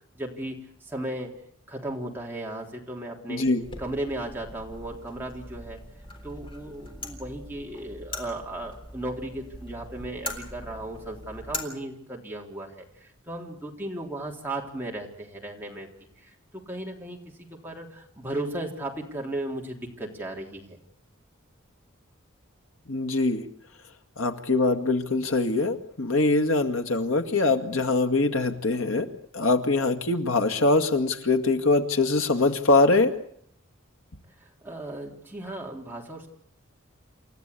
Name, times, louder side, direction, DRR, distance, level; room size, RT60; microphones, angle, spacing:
voice 1, 0.1-0.6 0.8-1.3 1.7-3.5 3.8-5.8 6.2-15.9 16.2-20.8 34.6-36.3, right 1 dB, 10° right, -1 dB, 3.6 m, -36 dB
voice 2, 3.3-3.6 22.9-23.5 24.2-29.1 29.3-33.1, left 3 dB, 85° left, 7 dB, 2.1 m, -23 dB
sound 1, 3.6-11.6, left 2 dB, 25° left, 3.7 m, -41 dB
29.0 x 13.5 x 8.5 m, 0.68 s
head